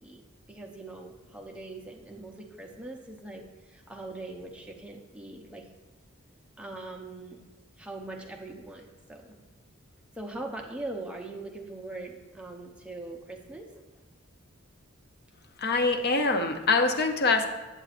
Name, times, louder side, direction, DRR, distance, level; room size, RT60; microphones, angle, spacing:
voice 1, 0.5-5.6 6.6-7.4 7.8-9.4 10.2-13.8, right 2 dB, 5° right, 0 dB, 0.7 m, -41 dB
voice 2, 15.6-17.5, left 3 dB, 50° left, 5 dB, 0.6 m, -24 dB
7.9 x 7.9 x 2.5 m, 1.2 s
head